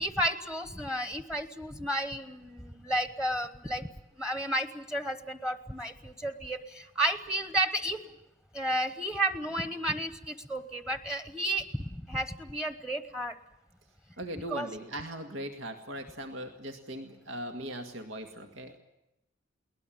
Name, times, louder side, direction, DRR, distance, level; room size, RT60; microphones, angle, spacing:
voice 1, 0.0-3.8 4.2-8.0 8.5-13.4 14.5-14.7, right 1 dB, 5° right, 10 dB, 1.0 m, -32 dB
voice 2, 14.2-18.8, right 1 dB, 90° right, 5 dB, 2.0 m, -39 dB
22.0 x 19.5 x 8.9 m, 0.87 s
head